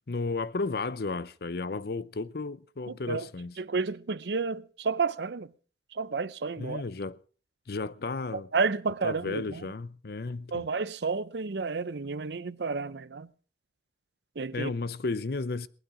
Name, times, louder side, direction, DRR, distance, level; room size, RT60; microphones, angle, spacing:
voice 1, 0.1-3.6 6.6-7.2 7.7-8.5 9.0-10.6 14.5-15.7, left 3 dB, 60° left, 0.7 m, -33 dB
voice 2, 2.9-3.3 3.6-5.5 5.9-6.8 8.3-9.6 10.5-13.3 14.4-14.7, right 4 dB, 75° right, 0.6 m, -31 dB
19.5 x 11.5 x 4.9 m
head